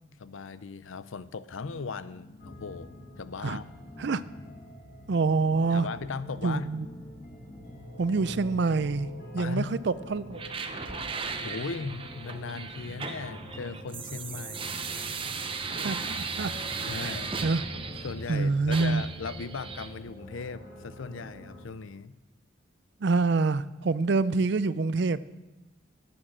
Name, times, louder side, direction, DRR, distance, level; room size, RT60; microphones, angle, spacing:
voice 1, 0.2-2.9 3.2-3.6 5.7-6.7 9.4-9.7 11.4-14.7 15.7-15.9 16.8-17.3 18.0-22.1, left 4 dB, 90° left, 15 dB, 0.6 m, -38 dB
sound 1, 1.5-3.3 3.8-9.4 10.4-10.5 10.7-19.6, left 1 dB, 15° left, 0.4 m, -51 dB
sound 2, 2.4-21.6, equal, 50° left, 4.6 m, -45 dB
voice 2, 5.1-5.9 6.4-6.9 8.0-9.1 9.3-10.4 15.8-16.5 16.9-17.2 17.4-17.6 18.3-19.0 23.0-25.2, right 4 dB, 60° right, 17 dB, 0.4 m, -26 dB
sound 3, 10.3-18.3 18.7-19.9, right 5 dB, 25° right, 0.8 m, -36 dB
11.0 x 8.8 x 7.4 m, 1.1 s
head